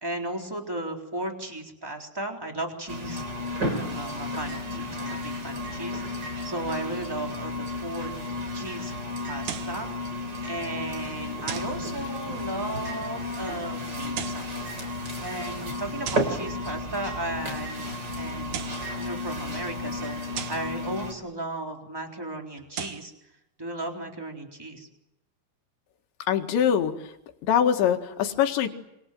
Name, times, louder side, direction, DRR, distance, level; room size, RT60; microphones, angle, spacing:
voice 1, 0.0-3.2 3.8-8.1 8.5-8.9 9.2-9.9 10.4-14.5 15.2-17.9 18.1-23.3 23.6-24.9, right 1 dB, 5° right, 2 dB, 2.9 m, -35 dB
sound 1, 2.9-21.1, left 1 dB, 25° right, 3.9 m, -33 dB
sound 2, 9.4-9.8 11.5-11.8 14.0-14.5 16.0-16.4 18.3-18.9 20.3-20.7 22.6-23.1, right 9 dB, 85° right, 1.6 m, -36 dB
voice 2, 26.3-26.9 27.4-28.7, left 9 dB, 70° left, 4 dB, 4.0 m, -23 dB
27.5 x 26.5 x 7.8 m, 0.87 s
omnidirectional pair, 5.7 m